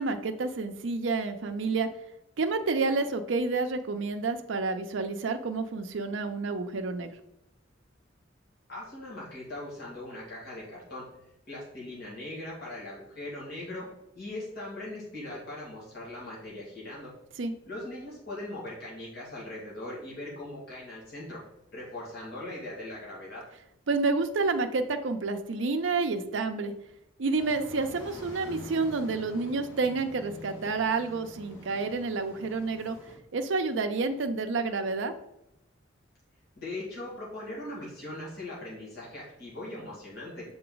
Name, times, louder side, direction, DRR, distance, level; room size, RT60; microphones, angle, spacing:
voice 1, 0.0-1.9 2.4-7.1 17.4-17.5 23.9-26.7 27.2-33.0 33.3-35.1, right 3 dB, 70° right, 6 dB, 0.5 m, -29 dB
voice 2, 8.7-11.0 11.5-13.9 14.1-17.1 17.7-21.4 21.7-23.4 36.6-40.4, left 1 dB, 55° left, -6 dB, 1.9 m, -40 dB
sound 1, 27.3-33.2, left 1 dB, 80° left, 2.1 m, -47 dB
6.7 x 3.9 x 3.9 m, 0.85 s
head